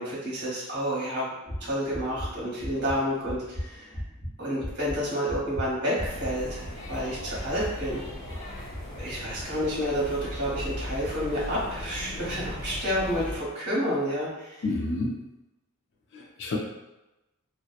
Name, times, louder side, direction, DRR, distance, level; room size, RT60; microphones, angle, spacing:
voice 1, 0.0-1.3 1.6-3.9 4.4-6.6 6.9-8.0 9.0-14.6, equal, 55° right, -7 dB, 0.9 m, -29 dB
sound 1, 1.4-10.4 10.8-11.1 11.5-11.8, equal, 10° left, 0.8 m, -39 dB
sound 2, 6.0-13.4, left 1 dB, 35° left, 1.1 m, -38 dB
voice 2, 14.6-15.1 16.1-16.6, left 2 dB, 55° left, -1 dB, 0.4 m, -29 dB
2.7 x 2.0 x 2.3 m, 1.0 s
head